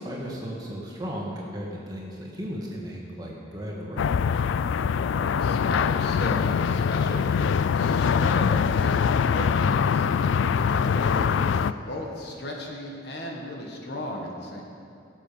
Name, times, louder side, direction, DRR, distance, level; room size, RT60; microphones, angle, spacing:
voice 1, 0.0-4.1, equal, 20° right, -3 dB, 1.8 m, -35 dB
sound 1, 4.0-11.7, left 6 dB, 80° left, 0.3 m, -23 dB
voice 2, 5.1-14.6, left 1 dB, 55° left, 0 dB, 1.6 m, -36 dB
17.5 x 7.4 x 5.2 m, 2.5 s
head